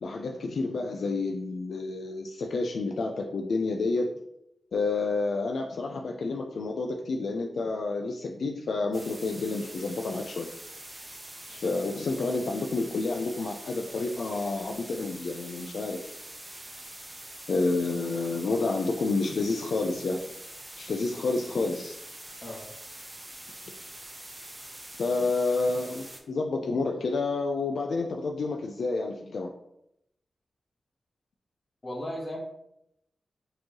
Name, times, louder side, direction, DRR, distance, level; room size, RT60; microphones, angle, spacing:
voice 1, 0.0-4.2 4.7-10.5 11.5-16.2 17.5-20.2 20.8-22.0 25.0-29.5, left 3 dB, 80° left, 2 dB, 0.3 m, -29 dB
sound 1, 8.9-26.2, right 1 dB, 20° right, 0.6 m, -44 dB
voice 2, 31.8-32.4, left 1 dB, 40° left, -1 dB, 1.1 m, -36 dB
4.3 x 3.0 x 2.9 m, 0.79 s
wide cardioid pair, 105°, 0 cm